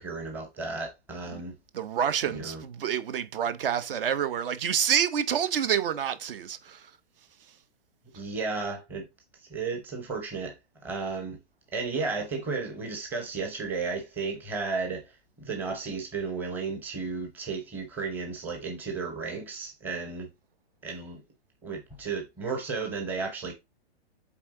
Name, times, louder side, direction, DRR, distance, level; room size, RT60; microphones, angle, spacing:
voice 1, 0.0-1.6 2.3-2.6 8.1-9.1 9.5-10.6 10.8-11.4 11.7-15.0 15.4-20.3 20.8-21.2 21.6-23.5, right 4 dB, 5° right, 0.7 m, -33 dB
voice 2, 1.7-6.9, right 8 dB, 55° right, 0.8 m, -28 dB
8.2 x 3.6 x 3.7 m
hypercardioid pair, 170°, 32 cm